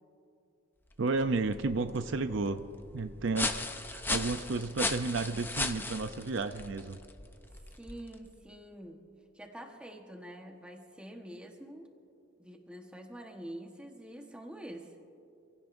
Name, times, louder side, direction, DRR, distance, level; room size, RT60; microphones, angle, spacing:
sound 1, 0.9-8.4, left 2 dB, 10° left, 0.6 m, -37 dB
voice 1, 1.0-2.6 2.9-3.5 3.9-7.0, right 3 dB, 60° right, 9 dB, 0.5 m, -32 dB
voice 2, 7.7-9.1 9.3-11.9 12.4-14.9, right 1 dB, 5° right, 2 dB, 1.2 m, -46 dB
27.0 x 16.5 x 2.6 m, 2.6 s
head